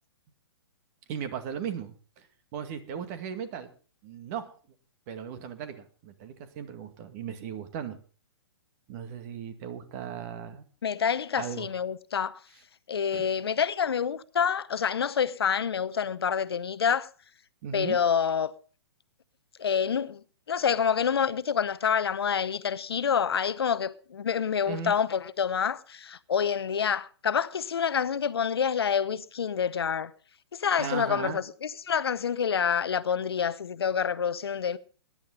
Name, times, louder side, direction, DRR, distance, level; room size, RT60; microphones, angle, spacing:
voice 1, 1.1-2.3 2.5-3.7 4.0-4.5 5.1-8.0 8.9-10.6 11.4-11.7 13.1-13.3 17.6-18.0 24.7-24.9 30.8-31.4, right 8 dB, 40° right, 2.1 m, -37 dB
voice 2, 10.8-12.4 12.9-17.1 17.7-18.5 19.6-20.2 20.5-30.1 30.5-34.8, left 7 dB, 70° left, 0.8 m, -27 dB
20.0 x 10.5 x 4.0 m
figure-of-eight pair, 125°, 14 cm